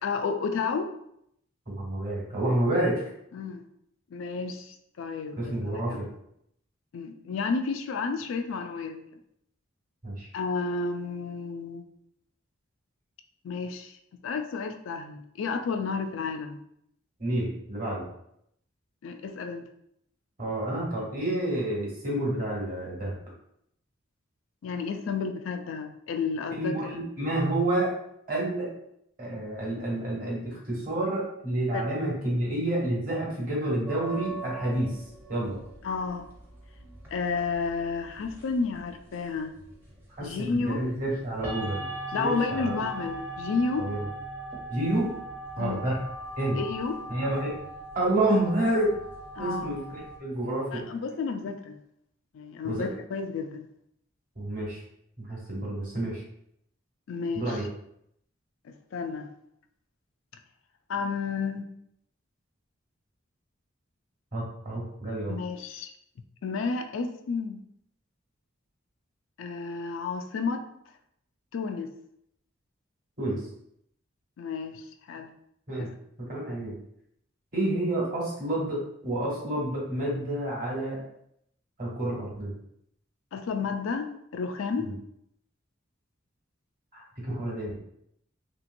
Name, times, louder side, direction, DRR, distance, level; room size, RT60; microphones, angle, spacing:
voice 1, 0.0-0.9 3.3-3.6 4.1-6.0 6.9-9.0 10.3-11.9 13.4-14.0 14.2-16.6 19.0-19.7 24.6-26.9 31.7-31.8 35.8-36.3 37.1-39.5 40.2-40.8 42.1-43.9 45.6-45.8 46.6-47.0 49.4-49.7 50.7-51.8 52.3-53.7 57.1-57.6 58.6-59.3 60.9-61.7 65.3-65.9 66.4-67.6 69.4-70.7 71.5-71.9 74.4-75.3 75.8-75.9 83.3-84.9, left 4 dB, 80° left, 7 dB, 0.3 m, -31 dB
voice 2, 1.7-3.0 5.4-6.1 10.0-10.3 17.2-18.0 20.4-23.1 26.6-27.9 28.3-28.7 29.2-35.0 35.3-35.6 40.2-41.8 42.2-42.7 43.8-44.0 44.7-45.1 45.6-46.0 46.4-46.6 47.1-47.6 47.9-48.9 49.4-50.8 52.6-52.8 54.4-54.8 55.2-56.2 57.3-57.6 64.3-65.3 73.2-73.4 75.7-75.9 76.3-76.8 77.5-78.8 79.0-81.0 81.8-82.5 84.8-84.9 86.9-87.7, right 1 dB, 45° right, -5 dB, 1.1 m, -29 dB
sound 1, 33.9-50.2, right 2 dB, 10° right, 0.6 m, -41 dB
2.9 x 2.8 x 2.5 m, 0.74 s
head